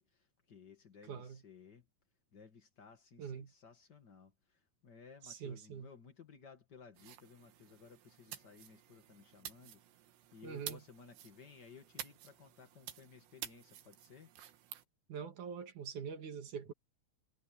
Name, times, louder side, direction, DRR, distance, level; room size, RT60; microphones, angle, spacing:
voice 1, 0.0-1.9 2.3-14.3, left 6 dB, 60° left, 1.1 m, -58 dB
voice 2, 1.1-1.4 3.2-3.5 5.2-5.9 10.4-10.8 15.1-16.7, right 7 dB, 55° right, 2.6 m, -44 dB
sound 1, 7.0-14.8, right 11 dB, 70° right, 3.7 m, -51 dB
omnidirectional pair, 5.3 m